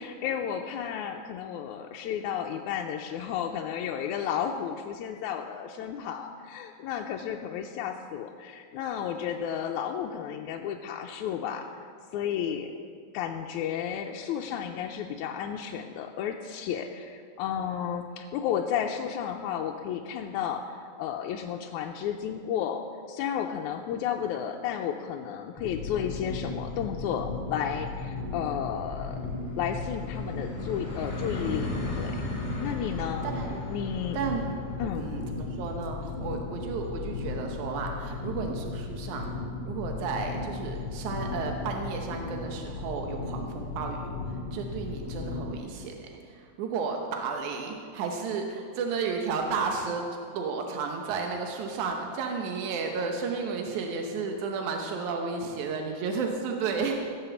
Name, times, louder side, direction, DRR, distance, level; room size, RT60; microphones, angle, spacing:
voice 1, 0.0-11.7 12.1-12.7 13.1-22.8 23.1-29.2 29.6-32.2 32.6-33.3 33.7-34.2 34.8-35.2, left 8 dB, 85° left, 2 dB, 2.0 m, -32 dB
sound 1, 25.6-45.6, left 3 dB, 55° left, 4.3 m, -36 dB
sound 2, 27.3-38.0, left 1 dB, 35° left, 2.9 m, -40 dB
voice 2, 33.2-33.6 34.1-39.3 39.6-50.0 50.3-57.1, right 5 dB, 85° right, 2 dB, 2.4 m, -33 dB
16.0 x 7.4 x 6.9 m, 2.2 s
omnidirectional pair, 3.4 m